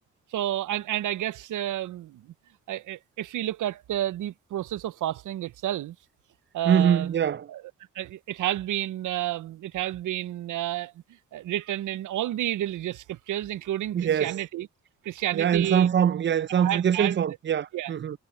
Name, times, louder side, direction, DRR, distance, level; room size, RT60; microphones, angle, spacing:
voice 1, 0.3-2.3 2.7-6.0 6.5-7.1 7.5-7.6 7.9-10.9 11.3-14.7 15.0-15.9 16.6-17.2 17.7-17.9, right 13 dB, 80° right, 0.6 m, -30 dB
voice 2, 6.7-7.5 13.9-14.4 15.3-18.2, right 8 dB, 40° right, 0.4 m, -23 dB
cardioid pair, 60°, 30 cm